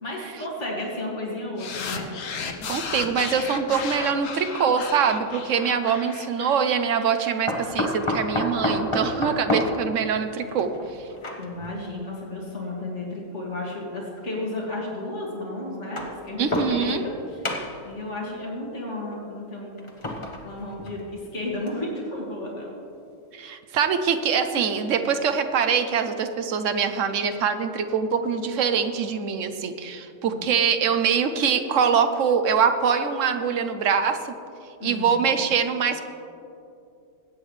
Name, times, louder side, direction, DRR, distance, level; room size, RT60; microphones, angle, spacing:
voice 1, 0.0-2.1 11.4-17.6 17.8-19.8 20.4-22.8 30.2-30.5 34.8-35.2, left 1 dB, 65° left, -3 dB, 2.6 m, -33 dB
sound 1, 1.6-8.1, left 5 dB, 90° left, 1.3 m, -35 dB
voice 2, 2.7-10.7 16.4-17.0 23.3-34.3 34.8-36.0, right 6 dB, 75° right, 8 dB, 1.1 m, -24 dB
sound 2, 5.0-5.2 7.5-11.7 12.7-12.8 14.0-14.1 15.7-17.2 17.4-18.0 19.8-21.2 21.7-21.8 22.1-22.2, left 1 dB, 25° left, 1.1 m, -29 dB
20.5 x 8.9 x 3.3 m, 2.7 s
omnidirectional pair, 1.3 m